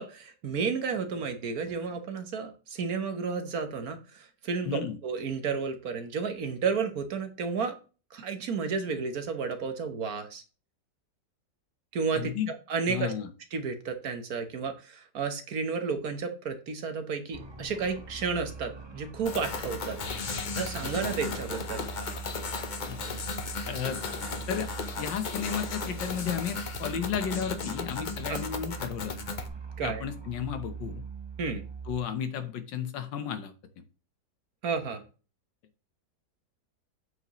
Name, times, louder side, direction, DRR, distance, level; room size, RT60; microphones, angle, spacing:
voice 1, 0.0-7.8 8.1-10.4 11.9-12.3 12.7-13.1 13.5-20.0 20.6-21.9 28.3-28.4 29.8-30.0 31.4-31.6 34.6-35.0, right 5 dB, 60° right, 8 dB, 1.4 m, -32 dB
voice 2, 4.6-5.0 12.1-12.5 12.9-13.3 22.9-23.0 23.7-24.0 24.5-24.7 25.0-29.1 29.8-31.0 31.9-33.5, left 8 dB, 85° left, 9 dB, 1.7 m, -33 dB
sound 1, 17.3-32.0, right 5 dB, 25° right, 0.6 m, -42 dB
sound 2, 19.2-29.5, left 5 dB, 50° left, 0.5 m, -36 dB
8.4 x 7.0 x 3.0 m, 0.34 s
omnidirectional pair, 1.9 m